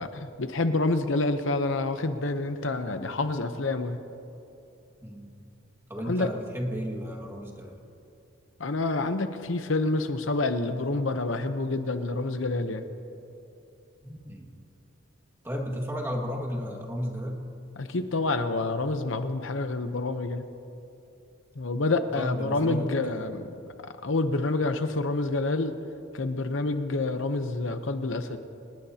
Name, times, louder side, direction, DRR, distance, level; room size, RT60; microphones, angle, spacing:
voice 1, 0.0-4.0 6.1-6.3 8.6-12.8 17.8-20.5 21.6-23.5 23.8-25.7 26.1-28.4, left 2 dB, 65° left, 8 dB, 0.8 m, -28 dB
voice 2, 5.0-5.4 5.9-7.8 14.0-14.5 15.4-17.4 22.2-23.2, equal, 10° right, 0 dB, 1.9 m, -33 dB
25.5 x 19.5 x 2.9 m, 2.8 s
head